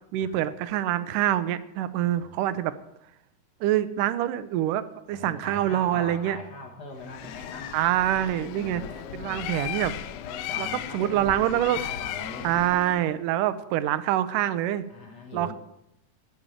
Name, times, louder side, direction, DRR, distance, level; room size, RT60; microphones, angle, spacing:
voice 1, 0.1-2.7 3.6-6.4 7.7-8.8 9.1-9.9 10.6-10.7 10.9-11.8 12.4-14.9 15.3-15.5, right 12 dB, 85° right, 13 dB, 2.2 m, -25 dB
voice 2, 2.0-2.5 5.1-7.7 8.6-9.4 10.1-12.9 14.9-15.5, left 3 dB, 40° left, 2 dB, 1.6 m, -41 dB
Bird, 7.0-13.0, left 11 dB, 75° left, 1.8 m, -36 dB
12.0 x 5.4 x 8.9 m, 0.83 s
omnidirectional pair, 3.7 m